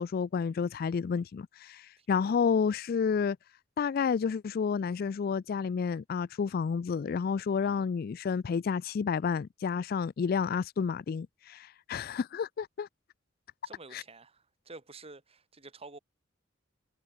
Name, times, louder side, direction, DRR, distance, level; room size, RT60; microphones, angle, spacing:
voice 1, 0.0-3.4 3.8-12.9 13.9-14.0, left 6 dB, 50° left, 0.3 m, -30 dB
voice 2, 2.0-2.3 7.6-7.9 13.6-16.0, right 3 dB, 30° right, 2.1 m, -50 dB
head